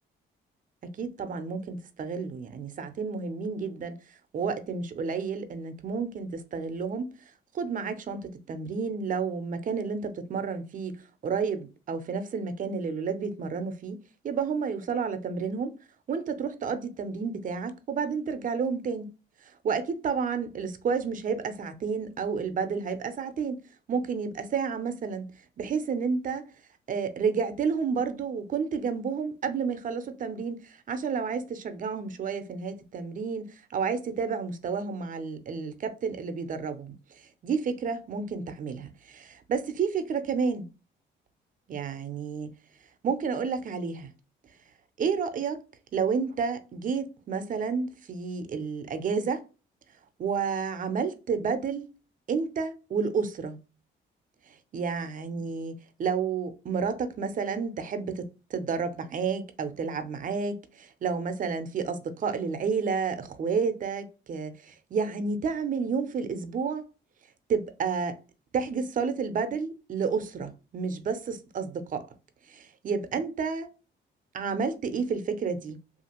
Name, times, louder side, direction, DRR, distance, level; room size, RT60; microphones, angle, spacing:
voice 1, 0.8-4.0 4.3-7.1 7.5-14.0 14.2-15.7 16.1-19.1 19.6-23.6 23.9-25.3 25.6-26.4 26.9-40.7 41.7-42.5 43.0-44.1 45.0-45.6 45.9-49.4 50.2-51.9 52.3-53.6 54.7-55.7 56.0-66.9 67.5-68.2 68.5-72.1 72.5-73.7 74.3-75.8, right 5 dB, 45° right, 0.5 m, -30 dB
2.7 x 2.5 x 2.8 m
cardioid pair, 90°, 20 cm